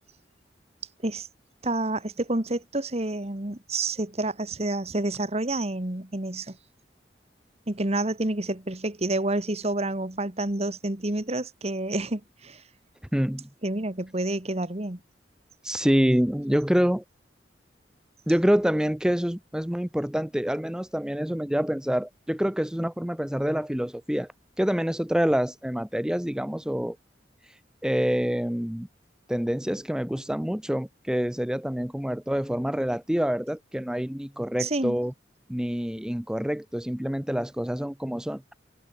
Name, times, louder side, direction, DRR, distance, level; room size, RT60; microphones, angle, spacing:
voice 1, 1.6-6.6 7.7-12.6 13.6-15.0 34.6-35.0, right 2 dB, 35° right, 1.8 m, -29 dB
voice 2, 13.1-13.5 15.6-17.0 18.3-24.3 24.6-27.0 27.8-28.9 29.3-35.1 35.5-38.4, equal, 5° right, 0.5 m, -26 dB
head